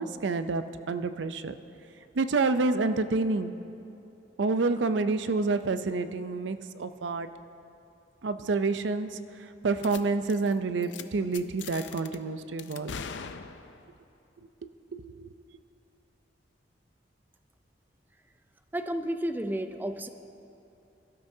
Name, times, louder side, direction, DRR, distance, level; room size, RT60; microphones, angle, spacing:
voice 1, 0.0-1.5 2.1-3.5 4.4-7.3 8.2-13.0 14.9-15.3, right 3 dB, 85° right, 11 dB, 0.5 m, -28 dB
sound 1, 9.8-10.0 10.3-10.5 10.8-11.0 11.3-12.2 12.6-13.9, left 6 dB, 90° left, 0.6 m, -41 dB
voice 2, 18.7-20.1, right 1 dB, 10° right, 8 dB, 0.5 m, -31 dB
22.5 x 12.5 x 2.7 m, 2.8 s
head